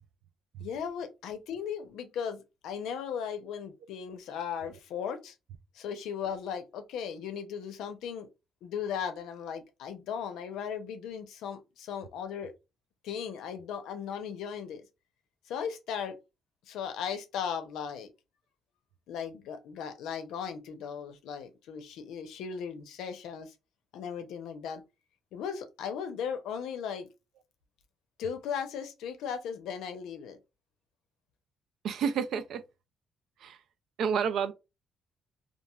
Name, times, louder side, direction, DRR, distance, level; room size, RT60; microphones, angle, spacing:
voice 1, 0.6-5.3 5.7-8.3 8.6-12.5 13.0-14.8 15.5-16.2 16.7-18.1 19.1-23.5 23.9-24.8 25.3-27.1 28.2-30.4, left 7 dB, 85° left, 0.5 m, -37 dB
voice 2, 31.8-32.6 33.4-33.6 34.0-34.5, right 7 dB, 75° right, 0.4 m, -29 dB
3.0 x 2.4 x 2.3 m
cardioid pair, 90°, 0 cm